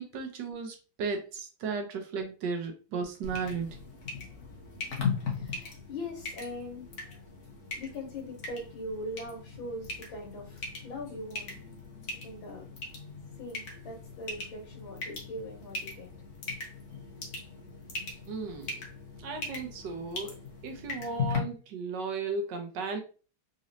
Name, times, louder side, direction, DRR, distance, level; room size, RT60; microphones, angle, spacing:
voice 1, 0.0-3.7 18.3-18.8 19.2-20.3 20.6-23.0, right 4 dB, 65° right, 4 dB, 1.2 m, -35 dB
sound 1, 3.2-21.4, left 4 dB, 50° left, 1.0 m, -39 dB
voice 2, 5.3-6.9 7.7-11.5 12.2-12.7 13.4-16.1, left 1 dB, 70° left, -1 dB, 1.7 m, -41 dB
3.9 x 3.1 x 2.6 m, 0.35 s
omnidirectional pair, 2.2 m